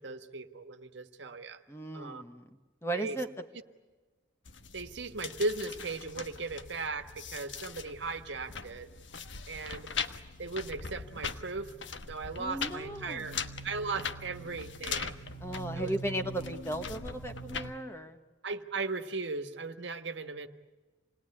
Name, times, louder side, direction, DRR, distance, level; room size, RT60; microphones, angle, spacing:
voice 1, 0.0-1.6 1.9-2.2 2.9-3.2 4.7-8.9 9.5-9.9 10.4-11.7 12.1-13.4 13.6-15.1 15.7-15.9 18.4-20.5, right 3 dB, 65° right, 7 dB, 1.5 m, -37 dB
voice 2, 1.7-2.5 2.8-3.3 12.4-13.3 15.4-18.2, right 1 dB, 15° left, 6 dB, 1.3 m, -36 dB
sound 1, 4.4-17.7, left 4 dB, 70° left, 1.2 m, -41 dB
28.0 x 20.0 x 9.9 m, 1.3 s
head